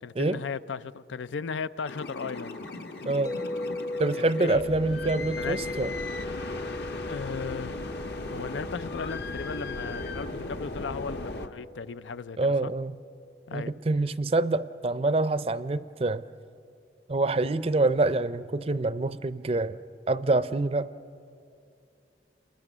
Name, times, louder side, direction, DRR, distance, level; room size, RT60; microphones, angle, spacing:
voice 1, 0.0-2.6 4.2-4.7 5.4-5.8 7.1-8.0 8.3-12.7 13.5-13.7, left 5 dB, 90° left, 0.5 m, -36 dB
sound 1, 1.8-11.5, left 2 dB, 60° left, 1.2 m, -37 dB
voice 2, 3.1-3.4 4.0-5.9 12.4-13.0 13.5-16.2 17.1-19.8 20.1-20.9, right 2 dB, 35° right, 0.5 m, -26 dB
sound 2, 3.2-13.3, left 1 dB, 20° left, 0.5 m, -39 dB
29.5 x 21.0 x 6.2 m
head